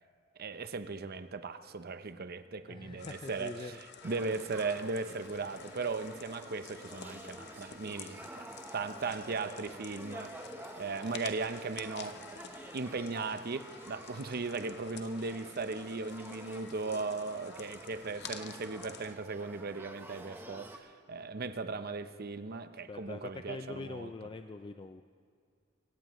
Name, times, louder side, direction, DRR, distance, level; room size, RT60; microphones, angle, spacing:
voice 1, 0.4-3.7 4.0-10.3 10.8-12.2 12.7-24.1, right 4 dB, 50° right, 11 dB, 0.7 m, -37 dB
voice 2, 2.7-3.8 22.9-25.0, left 3 dB, 25° left, 8 dB, 0.4 m, -43 dB
sound 1, 3.0-19.1, left 7 dB, 60° left, 0.8 m, -51 dB
Male speech man speaking / Child speech kid speaking / Conversation, 4.0-20.8, right 1 dB, 10° right, 1.0 m, -50 dB
24.0 x 17.0 x 3.1 m, 2.2 s
head